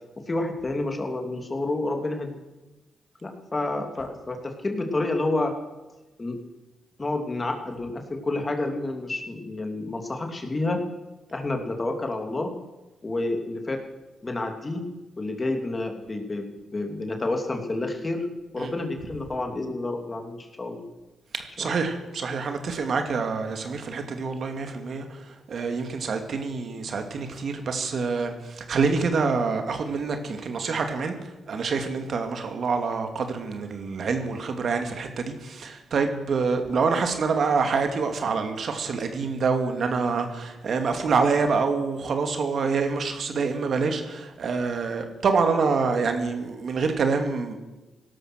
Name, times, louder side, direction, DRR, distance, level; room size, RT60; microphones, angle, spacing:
voice 1, 0.3-2.4 3.2-5.5 6.2-6.4 7.0-10.8 11.3-12.5 13.0-13.8 14.2-14.8 15.2-18.3 18.5-20.9 21.6-21.7, left 2 dB, 30° left, 4 dB, 3.0 m, -29 dB
voice 2, 21.3-31.2 31.5-47.5, right 4 dB, 60° right, 6 dB, 2.3 m, -26 dB
17.5 x 12.5 x 6.4 m, 1.1 s
cardioid pair, 70°, 0 cm